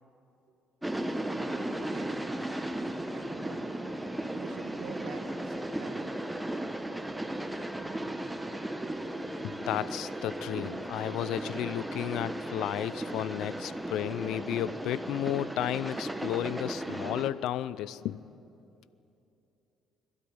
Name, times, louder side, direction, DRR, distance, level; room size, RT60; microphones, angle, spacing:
sound 1, 0.8-17.3, right 1 dB, 5° right, 1.1 m, -36 dB
voice 1, 1.3-2.1 3.1-3.7 4.3-6.1, right 7 dB, 80° right, 7 dB, 1.6 m, -47 dB
voice 2, 9.4-18.2, left 12 dB, 80° left, 18 dB, 0.5 m, -33 dB
22.0 x 12.5 x 9.5 m, 2.8 s
cardioid pair, 105°, 0 cm